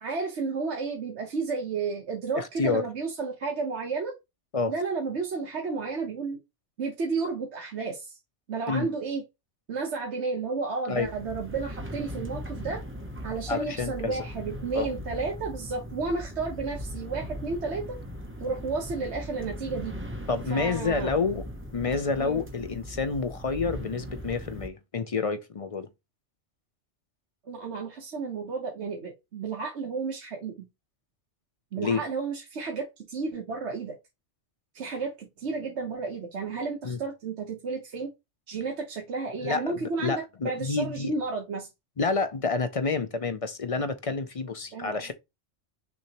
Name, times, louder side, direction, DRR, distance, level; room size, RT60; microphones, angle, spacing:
voice 1, 0.0-4.1 4.7-6.4 6.8-8.2 8.5-9.2 9.7-12.8 13.2-18.0 18.4-19.9 20.5-21.1 22.2-22.4 27.5-30.7 31.7-34.0 34.7-38.1 38.5-41.7 44.7-45.1, right 4 dB, 65° right, 1.3 m, -32 dB
voice 2, 2.4-2.8 4.5-4.7 8.7-8.9 10.9-11.1 13.5-14.2 14.7-14.9 20.3-21.4 21.7-25.9 31.8-32.0 36.8-37.0 39.4-41.1 42.0-45.1, left 4 dB, 40° left, 0.5 m, -29 dB
sound 1, 10.9-24.7, equal, 15° right, 0.6 m, -39 dB
6.1 x 2.8 x 2.9 m
omnidirectional pair, 1.2 m